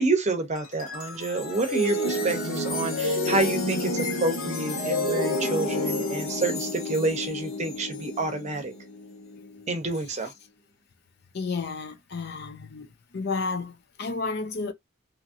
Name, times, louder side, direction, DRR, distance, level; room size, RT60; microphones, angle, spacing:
voice 1, 0.0-8.7 9.7-10.3, right 2 dB, 35° right, 0.7 m, -28 dB
sound 1, 0.6-9.8, left 1 dB, 85° left, 1.6 m, -30 dB
voice 2, 11.3-12.9 13.1-14.7, left 4 dB, 50° left, 0.5 m, -31 dB
2.9 x 2.7 x 2.5 m
head